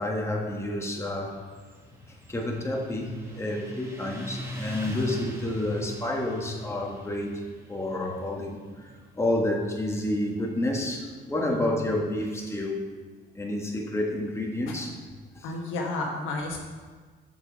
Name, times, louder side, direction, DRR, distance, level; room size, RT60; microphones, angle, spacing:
voice 1, 0.0-1.4 2.3-7.4 7.7-12.8 13.3-15.0, left 1 dB, 15° left, -1 dB, 1.5 m, -29 dB
Motorcycle, 1.3-12.4, right 1 dB, 15° right, 2.0 m, -44 dB
voice 2, 4.8-5.1 11.5-11.7 14.7-14.8 15.4-16.6, left 2 dB, 90° left, 0 dB, 1.5 m, -32 dB
7.1 x 6.6 x 5.2 m, 1.5 s
cardioid pair, 90°, 20 cm